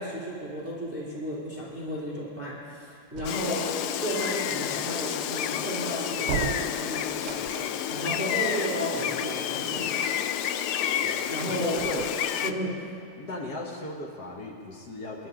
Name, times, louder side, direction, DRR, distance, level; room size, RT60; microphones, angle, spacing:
voice 1, 0.0-3.7 3.9-10.1 11.0-11.8 12.4-12.8, equal, 5° right, -7 dB, 2.4 m, -33 dB
sound 1, 3.1-3.9 6.2-7.8 11.7-12.7, right 9 dB, 90° right, 1.5 m, -36 dB
Gull seagull, 3.2-12.5, left 9 dB, 85° left, 0.9 m, -30 dB
voice 2, 11.5-12.1 13.2-15.3, left 1 dB, 50° left, -1 dB, 1.8 m, -36 dB
23.0 x 11.0 x 3.8 m, 2.3 s
omnidirectional pair, 2.3 m